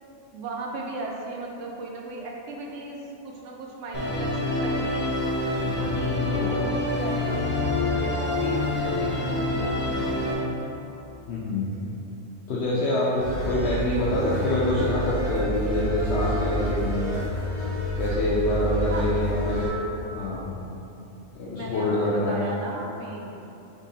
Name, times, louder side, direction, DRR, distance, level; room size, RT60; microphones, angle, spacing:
voice 1, 0.3-5.1 5.8-10.4 18.9-19.2 21.5-23.4, right 2 dB, 75° right, -1 dB, 0.9 m, -36 dB
Musical instrument, 3.9-10.3, left 2 dB, 15° left, 0.5 m, -26 dB
voice 2, 6.0-6.5 11.3-11.7 12.5-17.1 17.9-19.7 20.1-20.5 21.3-22.4, left 1 dB, 65° left, -7 dB, 0.8 m, -26 dB
sound 1, 13.2-19.7, equal, 30° right, 1.2 m, -29 dB
3.6 x 3.6 x 4.1 m, 3.0 s
omnidirectional pair, 1.3 m